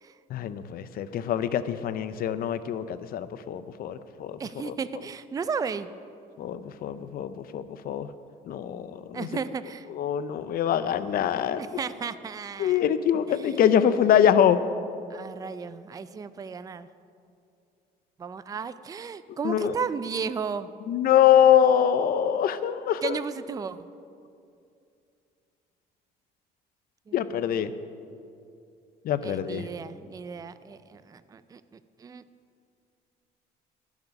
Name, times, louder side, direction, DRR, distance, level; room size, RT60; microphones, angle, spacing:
voice 1, 0.3-4.4 4.6-4.7 6.4-8.1 8.5-9.3 9.9-11.6 12.6-14.6 19.3-19.7 20.9-23.2 27.1-27.7 29.0-29.7, left 9 dB, 60° left, 13 dB, 0.6 m, -24 dB
voice 2, 4.4-5.9 9.1-9.9 11.6-12.8 13.3-13.6 15.1-16.9 18.2-20.7 23.0-23.9 27.1-27.2 27.6-27.8 29.2-32.2, right 6 dB, 20° right, 14 dB, 0.4 m, -34 dB
20.0 x 7.3 x 5.3 m, 2.5 s
cardioid pair, 110°, 17 cm